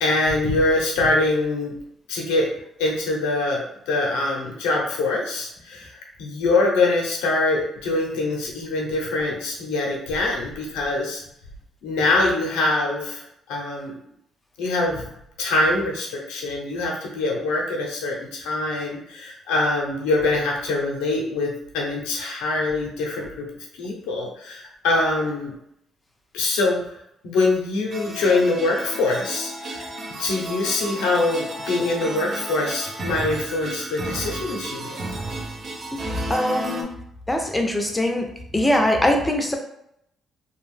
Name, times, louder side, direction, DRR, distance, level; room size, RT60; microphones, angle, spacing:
voice 1, 0.0-1.7 2.1-2.5 2.8-11.2 11.8-13.2 13.5-14.0 14.6-15.0 15.4-23.5 23.8-25.5 26.3-26.9 27.2-29.8 30.2-35.0, left 2 dB, 90° left, -1 dB, 0.6 m, -24 dB
sound 1, 27.9-36.8, right 1 dB, 55° right, 0.6 m, -33 dB
voice 2, 36.1-36.9 37.3-38.3 38.5-39.5, left 1 dB, 10° left, 3 dB, 0.6 m, -22 dB
2.4 x 2.1 x 3.2 m, 0.76 s
supercardioid pair, 70°, 0 cm